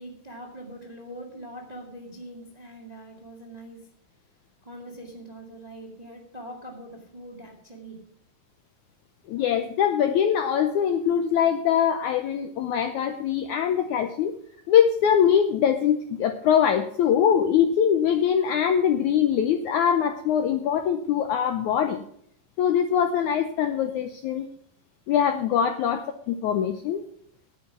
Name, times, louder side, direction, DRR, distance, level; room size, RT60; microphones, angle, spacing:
voice 1, 0.0-3.9 4.6-8.0, right 1 dB, 20° right, 2 dB, 1.1 m, -42 dB
voice 2, 9.3-14.4 14.7-22.0 22.6-24.5 25.1-27.0, left 8 dB, 85° left, 8 dB, 1.7 m, -23 dB
10.5 x 9.1 x 6.1 m, 0.66 s
omnidirectional pair, 4.3 m